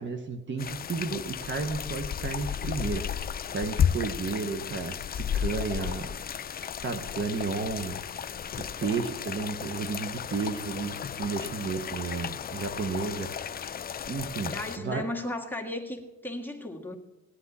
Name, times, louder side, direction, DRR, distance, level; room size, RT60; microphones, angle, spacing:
voice 1, 0.0-6.2 6.5-8.0 8.6-13.7 14.1-14.5 14.8-15.1, right 4 dB, 40° right, 6 dB, 1.1 m, -33 dB
Rain dripping water, 0.6-14.8, left 8 dB, 30° left, 0.4 m, -34 dB
voice 2, 14.5-17.0, left 1 dB, 5° left, 1 dB, 1.7 m, -36 dB
18.0 x 9.5 x 4.2 m, 1.1 s
cardioid pair, 90°, 30 cm